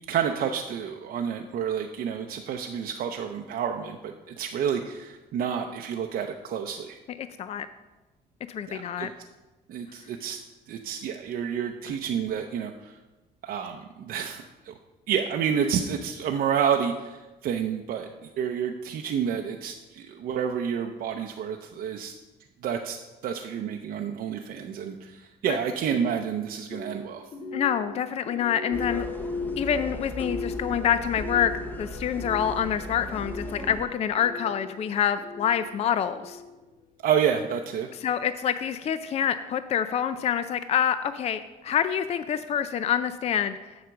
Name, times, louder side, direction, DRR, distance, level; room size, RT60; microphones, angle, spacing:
voice 1, 0.1-7.0 8.7-9.1 9.7-10.4 10.7-13.0 13.4-14.7 15.1-18.1 18.4-22.1 22.6-23.0 23.2-27.3 37.0-37.9, right 8 dB, 60° right, 3 dB, 0.6 m, -29 dB
voice 2, 7.2-7.7 8.5-9.1 25.5-25.6 27.5-29.1 29.6-31.5 31.8-36.4 38.0-43.6, left 9 dB, 40° left, 12 dB, 0.4 m, -27 dB
sound 1, 26.7-36.8, left 3 dB, 55° left, 1.5 m, -38 dB
sound 2, 28.7-33.9, right 1 dB, 10° left, 0.9 m, -38 dB
7.8 x 5.0 x 6.9 m, 1.1 s
cardioid pair, 110°, 17 cm